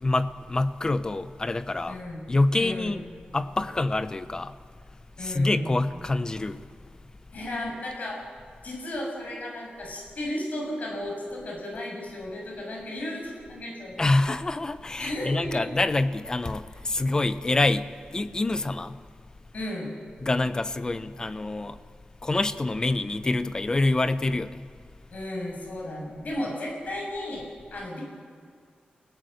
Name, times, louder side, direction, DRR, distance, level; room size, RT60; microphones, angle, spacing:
voice 1, 0.0-2.0 2.3-3.0 3.3-4.5 5.2-6.7 14.0-19.0 20.2-21.8 22.2-24.7, left 2 dB, 25° left, 0.7 m, -26 dB
voice 2, 1.9-2.2 2.5-3.0 5.2-5.7 7.3-8.2 8.6-14.0 15.0-15.7 19.5-19.9 25.1-27.4 27.7-28.0, left 1 dB, 55° left, 6.6 m, -34 dB
29.5 x 18.0 x 6.5 m
wide cardioid pair, 180°, 3 cm